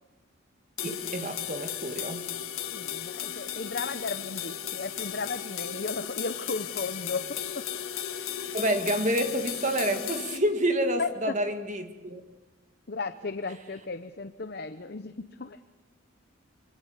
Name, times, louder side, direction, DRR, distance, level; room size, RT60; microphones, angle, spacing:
sound 1, 0.8-10.4, left 10 dB, 85° left, 1.7 m, -35 dB
voice 1, 0.8-2.3 8.5-12.2, right 1 dB, 35° right, 2.1 m, -28 dB
voice 2, 2.6-7.7 11.0-11.4 12.9-15.6, left 4 dB, 50° left, 0.8 m, -35 dB
26.0 x 25.0 x 8.2 m
head